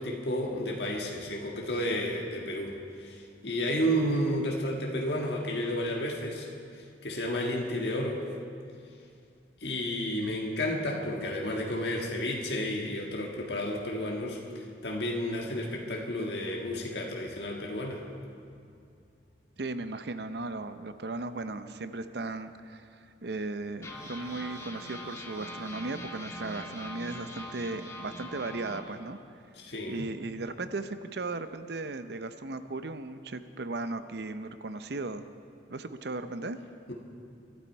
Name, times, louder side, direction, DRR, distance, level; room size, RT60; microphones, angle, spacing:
voice 1, 0.0-6.5 6.8-8.2 9.6-18.0 29.5-30.0 36.9-37.0, equal, 65° left, -1 dB, 1.6 m, -32 dB
sound 1, 18.2-20.9 21.4-21.5 21.7-21.9 22.5-22.6 23.8-28.8, left 1 dB, 15° left, 1.6 m, -43 dB
voice 2, 19.6-29.2 29.9-35.3 35.7-36.6, right 3 dB, 65° right, 11 dB, 0.7 m, -36 dB
24.0 x 12.5 x 4.6 m, 2.4 s
head